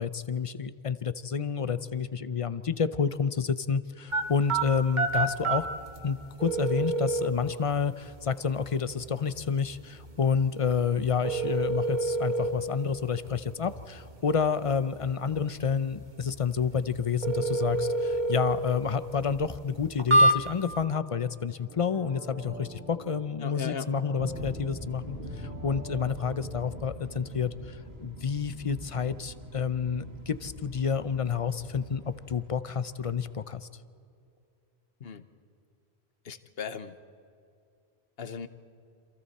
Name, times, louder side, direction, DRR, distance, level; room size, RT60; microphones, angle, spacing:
voice 1, 0.0-5.7 6.0-33.7, left 6 dB, 35° left, 14 dB, 0.7 m, -29 dB
sound 1, 4.1-20.8, right 2 dB, 45° right, 1.7 m, -30 dB
sound 2, 21.5-28.4 28.7-28.8, equal, 15° right, 2.5 m, -47 dB
voice 2, 23.4-23.9 35.0-35.2 36.2-36.9 38.2-38.5, left 6 dB, 70° left, 10 dB, 1.2 m, -37 dB
sound 3, 24.2-33.6, equal, 75° right, 2.8 m, -43 dB
28.5 x 27.0 x 4.3 m, 2.5 s
omnidirectional pair, 1.1 m